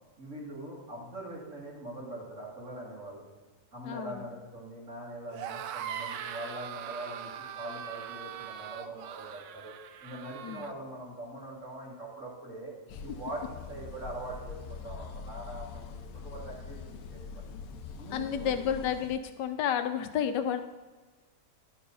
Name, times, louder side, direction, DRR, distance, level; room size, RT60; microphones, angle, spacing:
voice 1, 0.2-3.2 3.7-9.7 10.0-12.7 13.0-17.6 17.9-18.6, right 1 dB, 45° right, -5 dB, 2.8 m, -42 dB
voice 2, 3.8-4.3 10.4-10.7 17.5-17.6 18.1-20.6, left 8 dB, 80° left, 9 dB, 1.3 m, -31 dB
sound 1, 5.3-10.7, right 9 dB, 90° right, 1.2 m, -41 dB
sound 2, 12.9-19.2, left 5 dB, 65° left, 0.9 m, -43 dB
11.0 x 4.6 x 5.4 m, 1.3 s
omnidirectional pair, 1.8 m